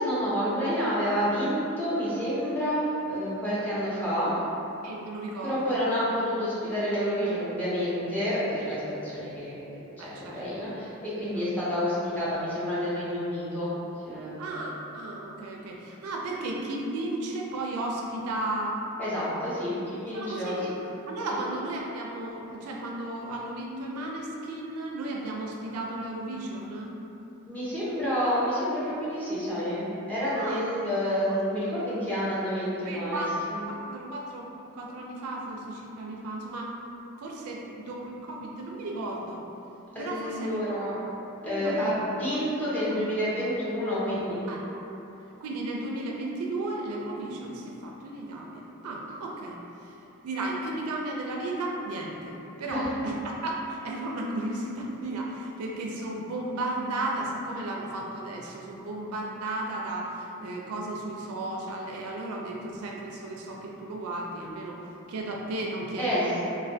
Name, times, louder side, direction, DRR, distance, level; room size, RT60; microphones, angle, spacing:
voice 1, 0.0-4.3 5.4-9.7 10.1-13.7 14.0-14.5 19.0-20.6 27.5-33.6 39.9-40.9 41.4-44.4 52.7-52.9 66.0-66.2, equal, 5° left, -11 dB, 0.7 m, -29 dB
voice 2, 4.8-5.9 10.0-10.7 11.3-11.5 14.4-18.8 20.0-20.7 21.1-26.9 30.3-30.6 31.3-31.4 32.8-34.4 34.7-36.7 37.2-39.4 40.0-40.5 41.4-42.0 44.5-44.6 45.4-49.9 50.2-64.8 65.1-66.4, right 2 dB, 75° right, -1 dB, 0.4 m, -34 dB
3.2 x 2.2 x 2.6 m, 2.9 s
head